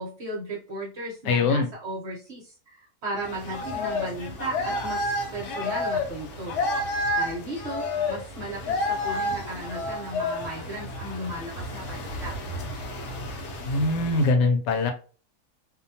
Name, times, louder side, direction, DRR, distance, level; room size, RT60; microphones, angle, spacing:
voice 1, 0.0-6.6 7.2-12.3, right 1 dB, 50° right, -4 dB, 0.9 m, -36 dB
voice 2, 1.3-1.7 13.6-14.9, left 3 dB, 85° left, 5 dB, 1.2 m, -22 dB
sound 1, 3.1-14.3, left 2 dB, 60° left, 0.8 m, -30 dB
2.8 x 2.2 x 2.6 m, 0.37 s
omnidirectional pair, 1.8 m